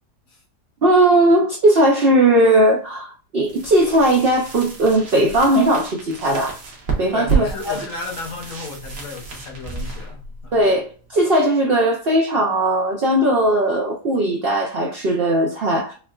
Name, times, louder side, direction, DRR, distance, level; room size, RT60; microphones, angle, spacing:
voice 1, 0.8-6.6 7.0-7.8 10.5-15.9, right 1 dB, 65° right, 0.5 m, -18 dB
sound 1, 3.4-11.2, right 5 dB, 80° right, 1.6 m, -30 dB
voice 2, 7.1-10.6, left 4 dB, 60° left, 1.2 m, -33 dB
5.6 x 2.3 x 2.3 m
omnidirectional pair, 1.8 m